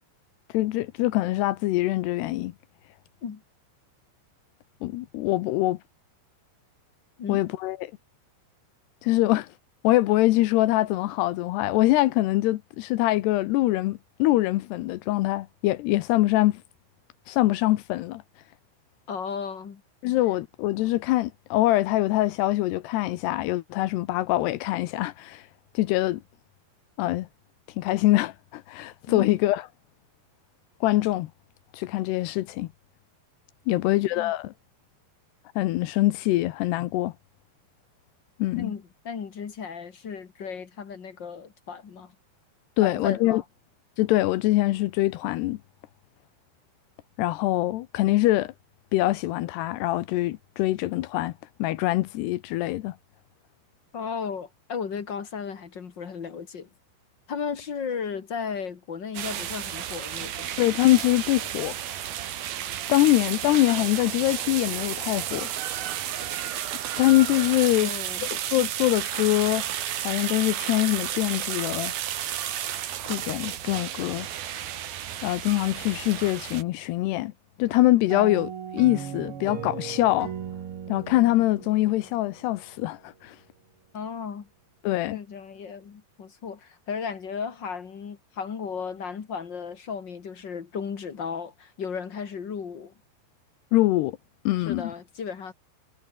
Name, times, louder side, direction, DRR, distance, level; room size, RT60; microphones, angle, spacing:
voice 1, 0.5-2.5 4.8-5.8 7.3-7.9 9.0-9.5 9.8-16.6 17.3-18.2 20.0-25.4 25.7-26.2 27.0-27.3 27.8-29.6 30.8-31.3 31.7-32.7 33.7-34.5 35.6-37.1 38.4-38.7 42.8-43.4 44.0-45.6 47.2-48.5 48.9-51.3 51.6-52.9 60.6-61.7 62.9-65.5 67.0-67.9 68.2-69.6 70.0-71.9 73.1-74.3 75.2-77.3 77.6-80.3 80.9-83.4 84.8-85.2 93.7-94.2 94.5-94.9, left 17 dB, 80° left, 2.7 m, -24 dB
voice 2, 19.1-19.8 29.1-29.4 33.7-34.3 38.6-42.1 42.8-43.4 53.9-56.7 57.3-60.5 67.8-68.3 83.9-84.5 85.1-92.9 94.6-95.5, left 6 dB, 60° left, 1.1 m, -35 dB
sound 1, 59.1-76.6, right 11 dB, 60° right, 3.4 m, -32 dB
sound 2, 78.1-82.7, right 8 dB, 80° right, 1.2 m, -37 dB
omnidirectional pair, 5.3 m